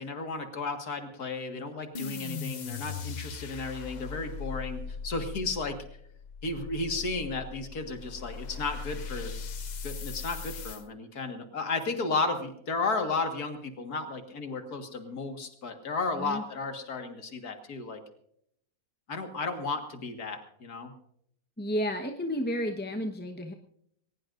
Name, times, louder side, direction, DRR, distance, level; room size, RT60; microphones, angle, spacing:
voice 1, 0.0-5.8 6.4-9.3 9.8-18.0 19.1-20.9, left 3 dB, 75° left, 6 dB, 2.3 m, -33 dB
sound 1, 1.9-10.8, left 5 dB, 55° left, 0.5 m, -39 dB
voice 2, 21.6-23.5, equal, 5° left, 3 dB, 1.0 m, -31 dB
21.0 x 19.5 x 2.6 m, 0.70 s
omnidirectional pair, 1.6 m